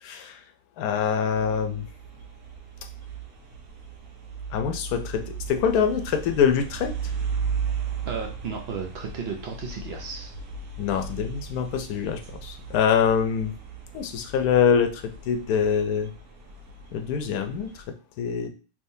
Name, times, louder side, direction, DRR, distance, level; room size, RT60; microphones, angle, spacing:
voice 1, 0.0-0.4 0.8-1.9 4.5-6.9 10.8-13.5 13.9-16.1 16.9-17.8 18.2-18.5, left 7 dB, 80° left, 6 dB, 1.1 m, -24 dB
sound 1, 1.3-17.8, right 5 dB, 85° right, 1.3 m, -36 dB
voice 2, 8.1-10.3, right 5 dB, 65° right, 2 dB, 0.6 m, -34 dB
3.5 x 2.9 x 2.6 m, 0.35 s
omnidirectional pair, 1.6 m